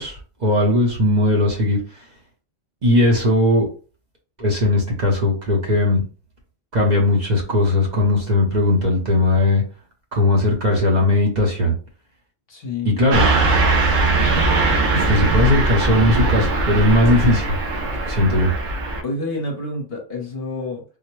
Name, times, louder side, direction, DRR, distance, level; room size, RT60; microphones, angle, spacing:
voice 1, 0.0-1.8 2.8-3.7 4.4-6.0 6.7-9.6 10.1-11.7 12.8-13.3 14.9-17.5 18.1-18.5, left 2 dB, 40° right, -2 dB, 0.9 m, -18 dB
voice 2, 12.5-13.0 19.0-20.8, left 2 dB, 55° left, 1 dB, 1.0 m, -28 dB
Car passing by / Truck, 13.1-19.0, right 3 dB, 80° right, 1.1 m, -20 dB
3.8 x 2.1 x 3.0 m, 0.36 s
omnidirectional pair, 1.3 m